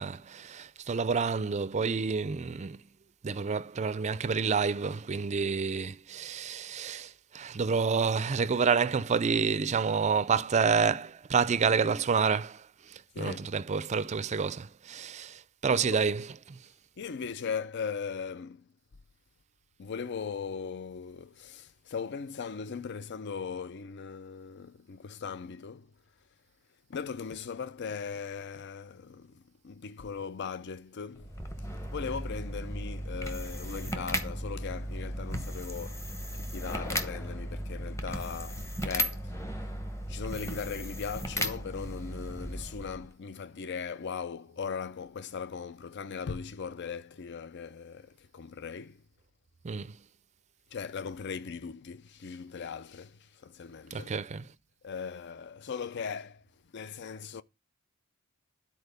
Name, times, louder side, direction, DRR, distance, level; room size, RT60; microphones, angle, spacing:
voice 1, 0.0-2.8 3.2-12.6 12.9-16.6 49.6-50.0 53.9-54.4, right 5 dB, 30° right, 0.4 m, -29 dB
voice 2, 13.1-13.5 15.7-16.0 17.0-18.7 19.8-25.9 26.9-31.3 31.9-36.1 36.3-39.3 40.1-49.0 50.7-54.1 54.8-56.4 56.7-57.4, left 6 dB, 55° left, 0.5 m, -39 dB
sound 1, 31.2-43.1, equal, 15° left, 0.9 m, -36 dB
10.0 x 4.3 x 6.7 m
head